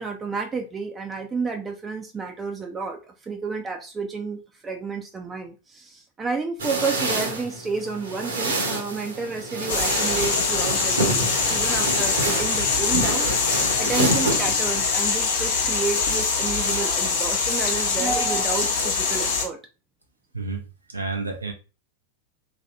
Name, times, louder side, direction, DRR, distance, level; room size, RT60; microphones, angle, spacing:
voice 1, 0.0-13.3 13.8-19.6, right 4 dB, 15° right, 0.4 m, -31 dB
sound 1, 6.6-14.9, right 2 dB, 65° right, 0.9 m, -28 dB
sound 2, 9.7-19.4, left 5 dB, 55° left, 0.8 m, -23 dB
voice 2, 20.3-21.5, right 3 dB, 80° right, 0.4 m, -31 dB
3.1 x 2.6 x 2.5 m
figure-of-eight pair, 90°, 0 cm